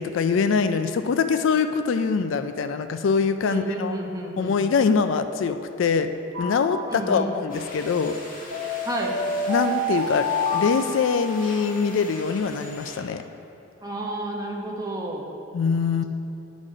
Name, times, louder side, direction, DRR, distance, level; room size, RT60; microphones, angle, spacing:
voice 1, 0.0-4.0 4.4-6.1 6.4-8.2 9.5-13.2 15.5-16.0, left 5 dB, 65° left, 9 dB, 0.3 m, -23 dB
voice 2, 3.4-4.5 6.9-7.3 8.8-9.2 13.8-15.2, right 1 dB, 20° right, -1 dB, 0.9 m, -31 dB
sound 1, 6.3-7.4 8.5-11.7, left 1 dB, 60° right, 1.3 m, -29 dB
sound 2, 7.5-13.0, left 1 dB, 40° left, 1.5 m, -41 dB
11.0 x 4.1 x 4.9 m, 2.8 s
head